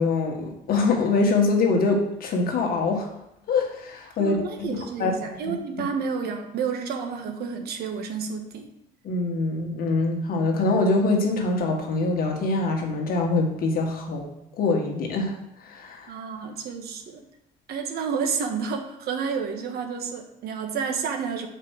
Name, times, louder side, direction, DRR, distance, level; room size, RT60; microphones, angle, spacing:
voice 1, 0.0-3.1 3.5-5.1 5.4-5.9 9.0-14.3 14.6-15.4 15.6-16.1, left 3 dB, 60° left, 1 dB, 1.7 m, -24 dB
voice 2, 4.2-8.7 16.1-17.2 17.7-21.5, right 6 dB, 70° right, 4 dB, 1.3 m, -30 dB
5.9 x 4.7 x 6.4 m, 0.83 s
cardioid pair, 110°, 17 cm